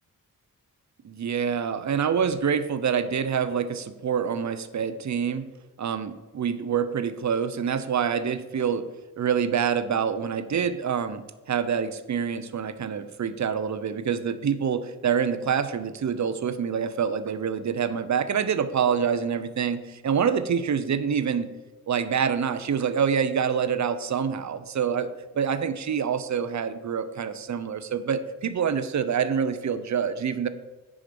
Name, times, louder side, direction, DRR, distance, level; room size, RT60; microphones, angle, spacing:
voice 1, 1.0-5.5 5.8-8.9 9.2-21.5 21.9-25.1 25.3-30.5, right 7 dB, 55° right, 11 dB, 0.7 m, -26 dB
10.0 x 5.0 x 5.2 m, 1.2 s
wide cardioid pair, 110°, 34 cm